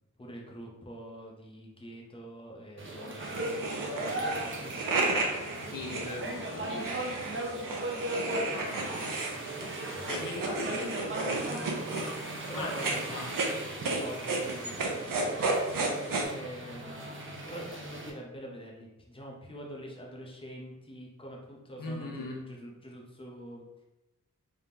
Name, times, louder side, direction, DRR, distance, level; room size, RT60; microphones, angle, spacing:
voice 1, 0.2-3.6 3.9-5.1 9.4-10.5 12.5-13.0 13.9-15.5 16.1-23.8, right 1 dB, 15° left, -2 dB, 0.7 m, -45 dB
sound 1, 2.8-18.1, right 1 dB, 40° right, 0.7 m, -38 dB
sound 2, 3.2-16.2, right 3 dB, 85° right, 0.7 m, -34 dB
voice 2, 5.7-6.9 8.3-9.3 10.0-11.3 12.5-13.3 21.8-22.4, left 2 dB, 85° left, 0 dB, 0.7 m, -39 dB
3.5 x 3.5 x 2.8 m, 0.96 s
wide cardioid pair, 115°, 32 cm